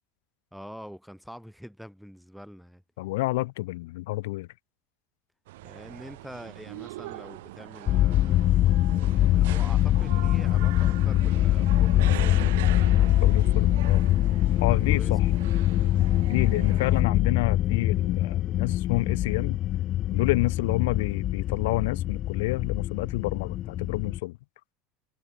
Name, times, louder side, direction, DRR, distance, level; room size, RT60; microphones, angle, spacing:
voice 1, 0.5-2.8 5.6-8.5 9.1-13.3 14.4-15.3 15.6-15.7, equal, ahead, 3.7 m, -45 dB
voice 2, 3.0-4.5 13.2-14.0 14.6-15.3 16.3-19.6 20.1-24.4, left 20 dB, 80° left, 0.4 m, -29 dB
sound 1, 5.5-17.0, right 18 dB, 85° right, 2.5 m, -41 dB
sound 2, 7.9-24.2, left 13 dB, 35° left, 0.6 m, -23 dB
supercardioid pair, 165°, 0 cm